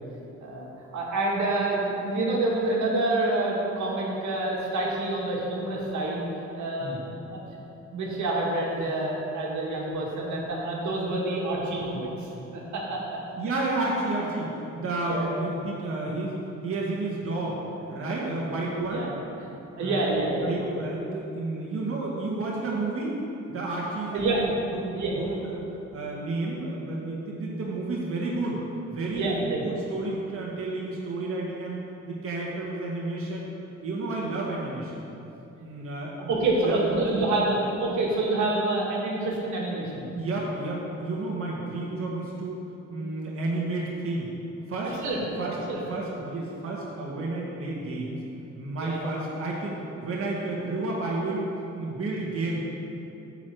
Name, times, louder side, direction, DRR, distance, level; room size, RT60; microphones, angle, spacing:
voice 1, 0.4-6.2 6.6-7.4 7.9-13.2 15.0-15.3 18.7-19.1 19.8-20.8 24.1-24.4 24.9-25.2 29.1-29.6 36.3-40.1 44.8-45.2 45.7-45.8 48.8-49.0, right 2 dB, 70° right, -3 dB, 2.1 m, -27 dB
voice 2, 13.4-17.6 17.9-19.1 19.8-20.1 20.4-23.2 23.5-28.6 28.9-31.8 32.1-33.5 33.8-35.0 35.6-36.3 36.6-37.0 40.1-42.6 42.9-44.3 44.7-45.0 45.4-45.6 45.9-48.2 48.5-51.5 51.7-52.6, right 2 dB, 50° right, -4 dB, 1.7 m, -31 dB
9.8 x 4.8 x 7.8 m, 2.9 s
cardioid pair, 90°, 30 cm